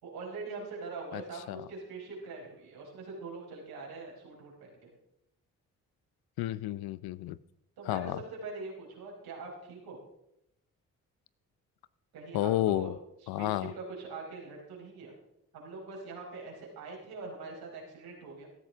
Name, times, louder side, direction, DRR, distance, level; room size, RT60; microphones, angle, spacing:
voice 1, 0.0-4.9 7.8-8.1 8.4-10.0 12.1-12.9 13.2-15.1 15.5-18.5, right 3 dB, 80° right, 4.8 m, -43 dB
voice 2, 6.4-7.4 7.9-8.2 12.3-13.0 13.3-13.7, left 14 dB, 75° left, 0.6 m, -31 dB
16.5 x 13.5 x 3.5 m
hypercardioid pair, 45°, 37 cm